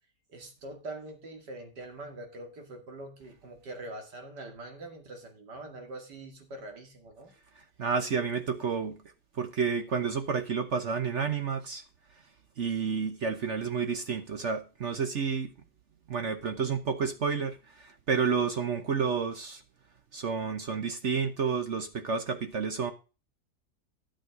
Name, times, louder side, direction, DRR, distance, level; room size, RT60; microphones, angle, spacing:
voice 1, 0.3-7.3, right 2 dB, 90° right, 2.9 m, -43 dB
voice 2, 7.8-9.0 9.3-11.8 12.6-15.5 16.1-19.6 20.1-22.9, right 6 dB, 50° right, 1.1 m, -30 dB
12.5 x 6.4 x 4.8 m
omnidirectional pair, 1.7 m